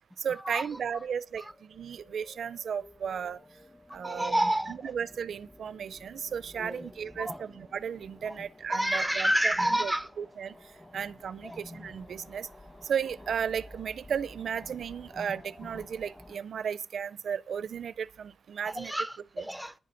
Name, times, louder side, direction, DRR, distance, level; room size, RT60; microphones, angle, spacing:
voice 1, 0.2-3.4 3.9-4.3 4.7-9.5 9.8-10.5 10.9-12.5 12.8-18.9 19.4-19.5, right 7 dB, 75° right, 0.4 m, -35 dB
sound 1, 0.7-16.4, left 1 dB, 15° left, 1.1 m, -52 dB
voice 2, 4.0-4.7 6.6-6.9 7.2-7.4 8.3-8.4 8.7-10.1 11.4-11.6 18.6-19.7, right 1 dB, 5° right, 0.4 m, -29 dB
10.5 x 7.7 x 6.9 m
wide cardioid pair, 140°, 0 cm